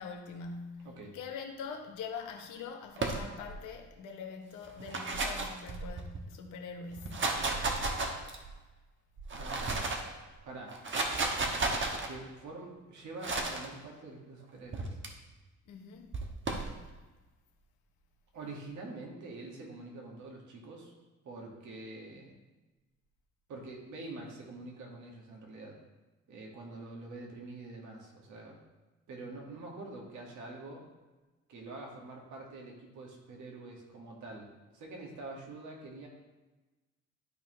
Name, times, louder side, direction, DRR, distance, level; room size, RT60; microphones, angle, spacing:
voice 1, 0.0-0.9 1.1-7.3 15.7-16.1, left 5 dB, 85° left, 0.9 m, -43 dB
voice 2, 0.8-1.2 9.3-9.9 10.4-10.8 12.1-15.0 18.3-20.9 21.2-22.3 23.5-25.8 26.3-28.6 29.1-30.8 31.5-36.1, right 2 dB, 75° right, 1.9 m, -46 dB
sound 1, 3.0-3.6 4.7-6.2 6.9-8.5 9.2-10.1 10.7-12.1 13.2-13.7 14.7-15.1 16.1-16.7, right 3 dB, 40° right, 1.2 m, -33 dB
12.0 x 4.4 x 3.2 m
cardioid pair, 90°, 30 cm